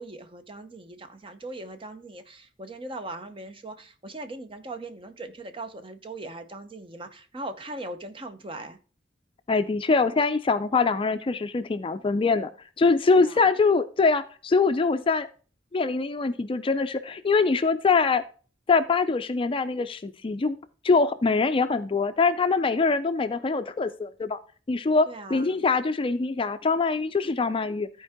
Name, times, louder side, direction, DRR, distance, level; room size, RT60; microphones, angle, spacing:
voice 1, 0.0-8.8 13.2-13.4 25.1-25.6, right 2 dB, 30° right, 0.7 m, -39 dB
voice 2, 9.5-12.5 12.8-15.3 15.7-18.2 18.7-20.6 20.8-24.4 24.7-27.9, left 4 dB, 30° left, 0.4 m, -23 dB
13.5 x 4.6 x 3.5 m
head